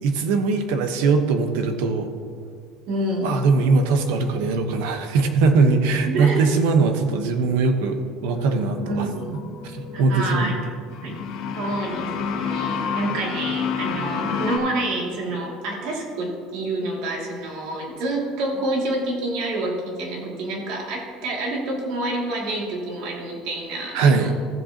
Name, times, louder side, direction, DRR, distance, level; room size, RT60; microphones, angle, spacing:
voice 1, 0.0-2.1 3.2-9.1 9.6-10.6 23.9-24.3, right 4 dB, 85° right, 6 dB, 1.1 m, -21 dB
voice 2, 2.9-3.3 6.1-6.5 8.7-9.4 9.9-10.6 11.0-11.2 11.5-24.3, right 1 dB, 65° right, -2 dB, 2.4 m, -28 dB
sound 1, 8.3-14.6, left 6 dB, 70° left, 2.1 m, -29 dB
15.0 x 7.7 x 2.9 m, 2.1 s
cardioid pair, 165°, 0 cm